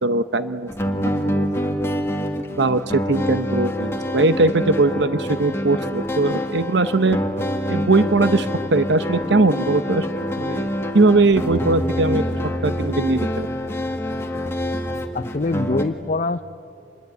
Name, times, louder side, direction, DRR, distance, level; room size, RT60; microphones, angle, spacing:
voice 1, 0.0-1.5 2.6-7.2 7.7-10.1 10.4-10.7 10.9-12.2 12.6-13.5, right 3 dB, 65° right, 12 dB, 0.8 m, -20 dB
sound 1, 0.7-15.8, equal, 15° left, 1.9 m, -26 dB
voice 2, 15.1-16.4, left 3 dB, 40° left, 9 dB, 0.5 m, -24 dB
27.0 x 21.5 x 9.3 m, 2.6 s
head